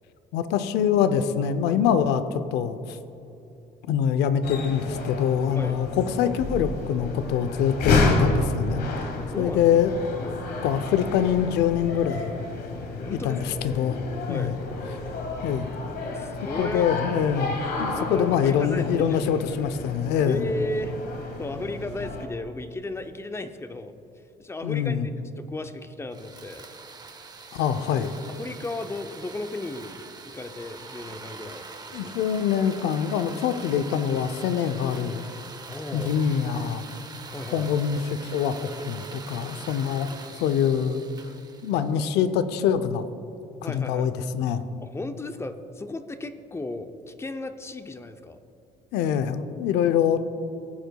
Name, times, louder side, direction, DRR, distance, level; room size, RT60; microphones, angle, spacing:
voice 1, 0.3-3.0 3.9-8.8 9.4-9.9 10.6-12.4 13.1-14.0 14.3-14.5 15.4-15.7 16.6-20.5 24.6-25.1 27.5-28.2 31.9-35.3 35.9-36.8 37.5-40.1 40.4-41.0 41.6-43.1 43.7-44.6 48.9-50.3, left 8 dB, 85° left, 11 dB, 0.5 m, -24 dB
sound 1, 4.4-22.3, left 3 dB, 65° left, 1.3 m, -30 dB
voice 2, 9.0-9.7 10.2-10.4 13.0-13.5 14.3-14.6 16.1-16.9 17.8-19.2 20.3-20.9 21.4-23.9 24.4-25.0 25.4-26.7 28.3-29.9 30.3-32.1 35.7-36.1 37.3-37.7 43.6-44.1 44.8-48.4, left 2 dB, 15° left, 9 dB, 0.5 m, -35 dB
sound 2, 26.1-42.3, right 4 dB, 25° right, 0.7 m, -43 dB
15.0 x 7.9 x 2.2 m, 2.9 s
cardioid pair, 110°, 17 cm